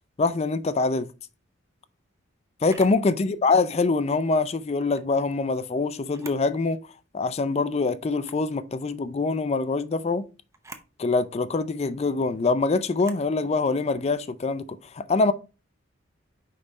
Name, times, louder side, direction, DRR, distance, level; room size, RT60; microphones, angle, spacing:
voice 1, 0.2-1.1 2.6-6.8 7.1-10.3 11.0-15.3, left 3 dB, 30° left, 0.4 m, -24 dB
Camera, 2.7-3.0 4.7-5.1 6.0-6.5 6.9-7.0 8.1-8.5 10.5-10.9 13.0-13.3, right 3 dB, 15° right, 0.6 m, -45 dB
5.4 x 4.8 x 4.0 m
head